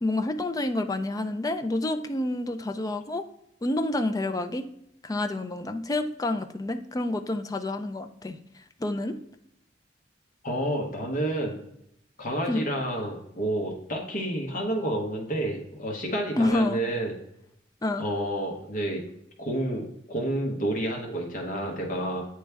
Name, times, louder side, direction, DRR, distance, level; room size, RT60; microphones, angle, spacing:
voice 1, 0.0-3.2 3.6-4.7 5.0-8.4 8.8-9.2 12.5-12.6 16.4-16.8 17.8-18.1, left 2 dB, 20° left, 7 dB, 0.4 m, -28 dB
voice 2, 10.4-11.6 12.2-17.1 18.0-19.0 19.4-22.3, right 1 dB, 45° left, 1 dB, 1.1 m, -29 dB
9.3 x 3.2 x 3.4 m, 0.77 s
head